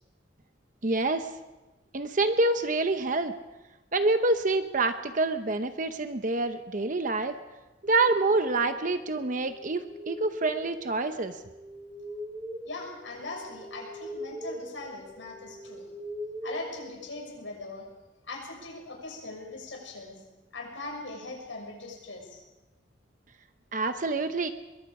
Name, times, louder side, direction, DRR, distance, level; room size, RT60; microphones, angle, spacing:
voice 1, 0.8-1.3 1.9-3.3 3.9-7.4 7.8-11.4 23.7-24.5, right 2 dB, 45° right, 8 dB, 0.9 m, -27 dB
sound 1, 8.0-17.7, equal, 5° right, 2.6 m, -42 dB
voice 2, 12.7-15.9 16.4-17.9 18.3-20.2 20.5-22.4, left 2 dB, 90° left, 1 dB, 6.2 m, -40 dB
24.0 x 22.0 x 4.9 m, 1.1 s
head